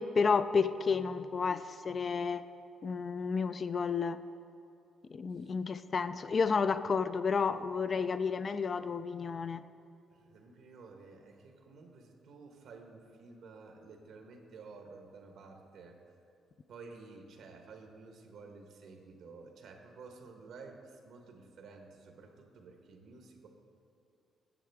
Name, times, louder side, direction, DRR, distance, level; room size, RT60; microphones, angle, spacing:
voice 1, 0.0-2.4 2.8-4.2 5.1-9.6, left 5 dB, 45° left, 12 dB, 0.3 m, -31 dB
voice 2, 10.1-16.0 16.7-23.5, right 4 dB, 75° right, 4 dB, 1.1 m, -52 dB
11.0 x 7.6 x 3.5 m, 2.7 s
cardioid pair, 90°, 0 cm